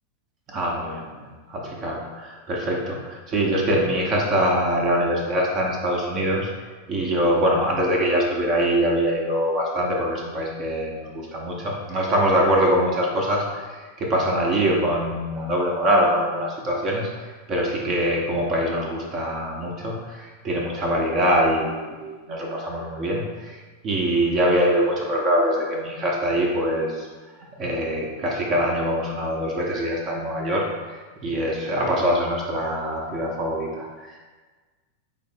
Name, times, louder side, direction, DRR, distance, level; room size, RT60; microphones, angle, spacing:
voice 1, 0.5-6.5 6.9-27.1 27.6-34.2, equal, 35° right, -2 dB, 0.7 m, -24 dB
4.9 x 2.0 x 4.3 m, 1.4 s
figure-of-eight pair, 90°, 0 cm